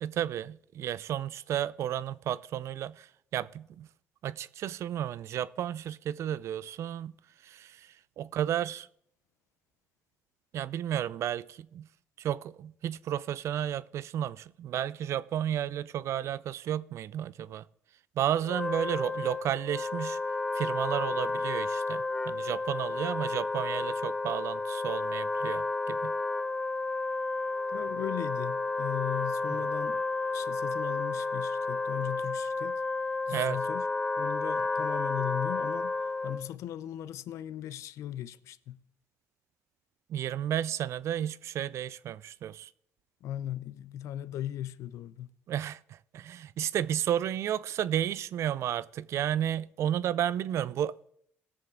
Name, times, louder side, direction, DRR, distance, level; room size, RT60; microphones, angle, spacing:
voice 1, 0.0-3.9 4.2-7.1 7.4-8.9 10.5-11.9 12.2-17.6 18.2-20.2 20.5-26.1 33.3-33.6 40.1-42.7 45.5-51.1, right 10 dB, 65° right, 0.4 m, -32 dB
Wind instrument woodwind instrument, 18.4-36.5, left 3 dB, 15° left, 0.4 m, -32 dB
voice 2, 27.7-30.0 30.3-32.8 33.3-33.9 34.2-38.8 43.2-45.3, left 12 dB, 75° left, 0.4 m, -38 dB
17.5 x 6.9 x 3.6 m
cardioid pair, 80°, 5 cm